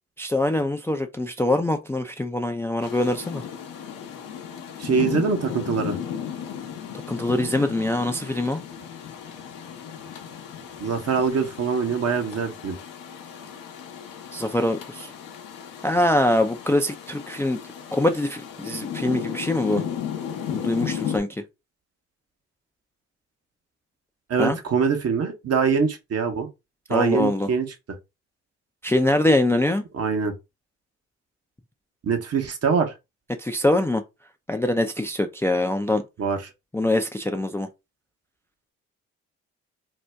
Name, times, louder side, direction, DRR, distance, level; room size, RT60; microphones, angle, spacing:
voice 1, 0.2-3.4 7.1-8.6 14.3-15.1 15.8-17.6 17.9-19.8 20.5-21.3 24.4-24.6 26.9-27.5 28.8-29.8 33.4-34.0 34.5-36.0 36.7-37.7, left 1 dB, 10° left, 0.4 m, -23 dB
Rain, 2.8-21.2, left 8 dB, 75° left, 0.8 m, -35 dB
voice 2, 4.8-6.0 10.8-12.8 24.3-26.5 26.9-27.7 29.9-30.3 32.0-32.9 36.2-36.5, right 5 dB, 45° right, 0.9 m, -24 dB
2.7 x 2.1 x 3.3 m
hypercardioid pair, 50°, 33 cm